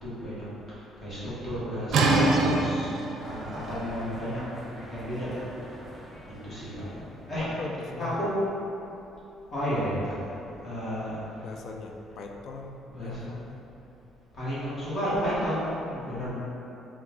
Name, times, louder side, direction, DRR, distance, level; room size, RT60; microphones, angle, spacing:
voice 1, 0.0-4.4 4.9-5.3 6.4-7.5 8.0-8.4 9.5-10.1 10.6-11.2 12.9-13.3 14.3-16.3, equal, 35° left, -10 dB, 1.4 m, -32 dB
sound 1, 1.9-7.5, right 2 dB, 65° right, 0.5 m, -28 dB
sound 2, 3.2-7.4, equal, 5° left, 0.6 m, -45 dB
voice 2, 7.4-8.2 11.4-13.6 16.2-16.3, left 3 dB, 55° left, 3 dB, 0.4 m, -40 dB
4.3 x 2.4 x 3.7 m, 2.9 s
cardioid pair, 120°, 0 cm